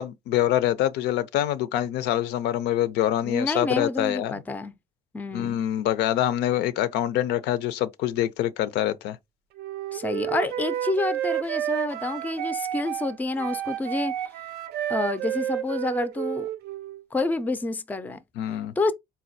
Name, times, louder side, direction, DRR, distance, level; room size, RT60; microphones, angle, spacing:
voice 1, 0.0-4.4 5.3-9.2 18.4-18.7, left 12 dB, 85° left, 0.4 m, -25 dB
voice 2, 3.2-4.7 5.1-5.6 9.9-14.1 14.9-16.5 17.1-18.2 18.8-18.9, left 2 dB, 10° left, 0.4 m, -28 dB
Wind instrument woodwind instrument, 9.6-17.0, right 11 dB, 75° right, 0.5 m, -30 dB
4.1 x 2.2 x 2.6 m
cardioid pair, 110°, 17 cm